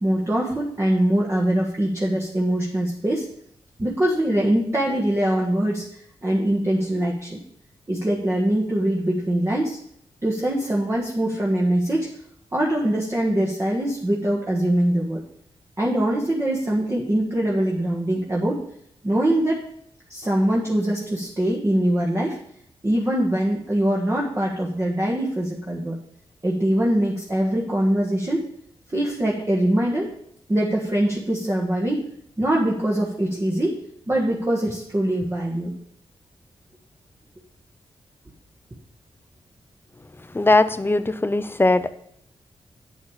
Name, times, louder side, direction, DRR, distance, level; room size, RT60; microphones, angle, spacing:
voice 1, 0.0-3.3 3.8-7.4 7.9-9.8 10.2-12.2 12.5-15.2 15.8-18.6 19.0-19.7 20.1-22.4 22.8-26.0 26.4-28.5 28.9-30.1 30.5-32.0 32.4-33.8 34.1-35.8, right 1 dB, 25° right, -3 dB, 1.7 m, -23 dB
voice 2, 40.3-41.9, left 2 dB, 20° left, 13 dB, 0.7 m, -19 dB
8.8 x 8.2 x 4.9 m, 0.69 s
cardioid pair, 75°, 11 cm